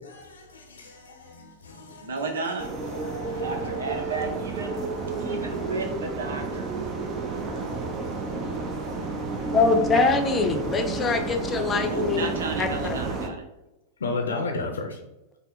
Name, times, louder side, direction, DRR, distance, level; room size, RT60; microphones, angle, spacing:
voice 1, 0.0-4.2 4.6-5.7 6.9-9.8 14.0-15.0, left 3 dB, 70° left, 4 dB, 0.6 m, -37 dB
voice 2, 2.0-2.7 3.4-4.8 5.2-6.8 11.9-13.4, right 3 dB, 65° right, 5 dB, 0.8 m, -33 dB
sound 1, 2.6-13.3, right 3 dB, 30° right, 0.7 m, -31 dB
voice 3, 9.5-13.0, left 4 dB, 20° left, 5 dB, 0.7 m, -24 dB
5.4 x 2.2 x 4.0 m, 0.96 s
figure-of-eight pair, 90°, 0 cm